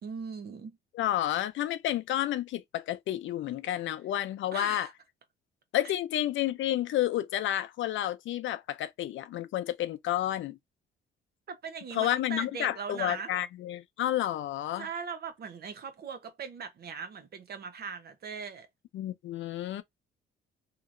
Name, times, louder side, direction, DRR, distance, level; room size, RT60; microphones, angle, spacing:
voice 1, 0.0-0.8 4.5-4.9 11.5-13.3 14.8-18.7, right 6 dB, 55° right, 0.8 m, -39 dB
voice 2, 0.9-4.9 5.7-10.6 11.9-14.9 18.9-19.8, left 12 dB, 75° left, 0.6 m, -30 dB
2.9 x 2.7 x 2.5 m
cardioid pair, 90°, 20 cm